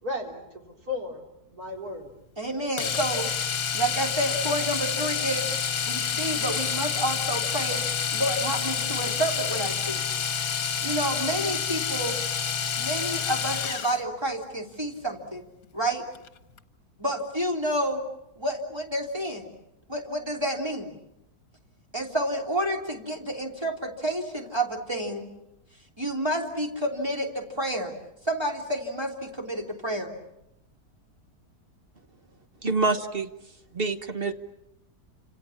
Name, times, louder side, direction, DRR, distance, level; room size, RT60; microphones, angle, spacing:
voice 1, 0.0-2.1 34.2-34.3, left 2 dB, 65° right, 1 dB, 4.2 m, -35 dB
voice 2, 2.4-3.3 3.7-5.5 5.9-7.8 8.1-10.0 10.8-12.2 12.8-15.4 15.7-16.0 17.0-18.0 18.4-19.5 19.9-20.9 21.9-25.3 26.0-27.9 28.3-30.1, right 1 dB, 15° right, 1 dB, 3.3 m, -29 dB
Domestic sounds home sounds, 2.8-14.0 16.1-16.3 16.6-16.7, left 7 dB, 60° left, 1.7 m, -28 dB
voice 3, 32.6-33.3 33.7-34.3, right 3 dB, 40° right, 7 dB, 1.3 m, -26 dB
29.5 x 27.0 x 7.2 m, 0.87 s
omnidirectional pair, 1.7 m